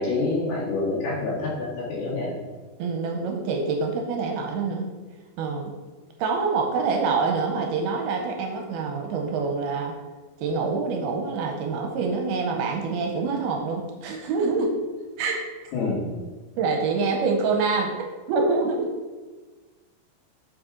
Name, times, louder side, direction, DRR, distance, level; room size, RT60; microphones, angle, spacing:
voice 1, 0.0-2.3 15.7-16.1, left 3 dB, 65° left, -7 dB, 3.9 m, -27 dB
voice 2, 2.8-4.9 5.4-5.7 6.2-10.0 10.4-14.8 15.2-15.7 16.6-18.0 18.3-18.9, right 4 dB, 75° right, 3 dB, 2.4 m, -26 dB
8.0 x 6.1 x 3.7 m, 1.3 s
omnidirectional pair, 4.8 m